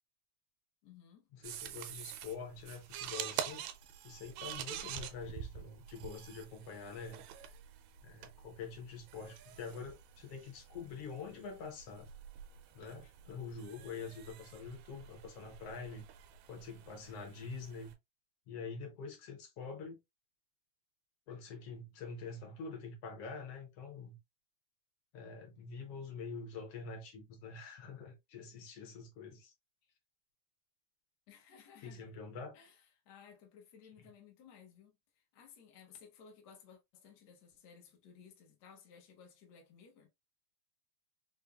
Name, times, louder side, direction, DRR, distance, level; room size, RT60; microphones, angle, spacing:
voice 1, 0.8-1.3 31.3-32.0 32.5-32.8 33.0-40.1, left 7 dB, 85° left, 0.9 m, -58 dB
voice 2, 1.3-3.6 4.0-7.2 8.0-12.1 12.7-16.0 16.5-17.9 18.5-20.0 21.3-24.2 25.1-29.5 31.8-32.6 34.0-34.1, left 5 dB, 65° left, 1.6 m, -46 dB
sound 1, 1.4-17.9, right 10 dB, 80° right, 1.7 m, -47 dB
5.2 x 2.2 x 2.3 m
omnidirectional pair, 3.3 m